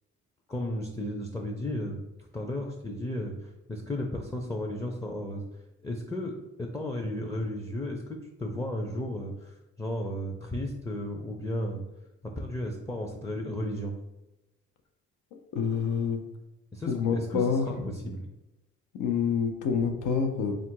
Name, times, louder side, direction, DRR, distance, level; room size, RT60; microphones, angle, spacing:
voice 1, 0.5-2.0 2.3-5.4 5.8-11.8 12.2-13.9 16.7-17.6 17.9-18.2, left 1 dB, 10° left, 2 dB, 0.4 m, -34 dB
voice 2, 15.5-16.2 16.9-17.9 18.9-20.5, left 6 dB, 85° left, 4 dB, 0.6 m, -27 dB
3.7 x 2.4 x 4.5 m, 0.99 s
cardioid pair, 90°, 30 cm